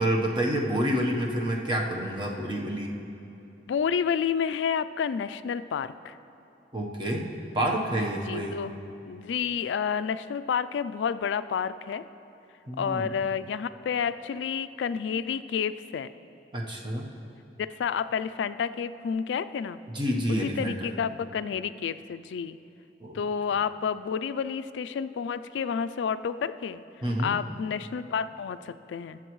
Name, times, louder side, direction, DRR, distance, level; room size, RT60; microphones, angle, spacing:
voice 1, 0.0-3.0 6.7-7.3 7.5-8.6 12.7-13.1 16.5-17.1 19.9-20.9 23.0-23.2 27.0-27.4, right 1 dB, 25° right, 0 dB, 1.0 m, -28 dB
voice 2, 3.7-6.2 8.3-8.7 9.1-12.0 12.8-16.1 17.6-19.8 20.4-22.6 23.1-26.8 27.2-29.2, left 7 dB, 85° left, 14 dB, 0.3 m, -30 dB
21.5 x 7.3 x 3.1 m, 3.0 s
head